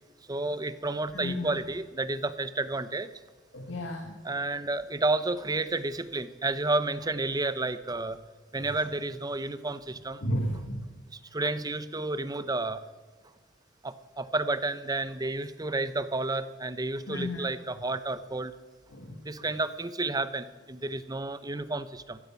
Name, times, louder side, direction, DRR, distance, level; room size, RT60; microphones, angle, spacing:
voice 1, 0.3-3.1 4.2-8.2 8.5-10.2 11.3-12.8 13.8-18.5 19.2-22.2, right 2 dB, 20° right, 13 dB, 0.7 m, -31 dB
voice 2, 1.1-1.6 3.5-4.2 8.5-8.7 10.2-10.9 17.1-17.5 18.9-19.2, left 1 dB, 65° left, 4 dB, 1.6 m, -33 dB
16.0 x 13.5 x 5.8 m, 1.3 s
head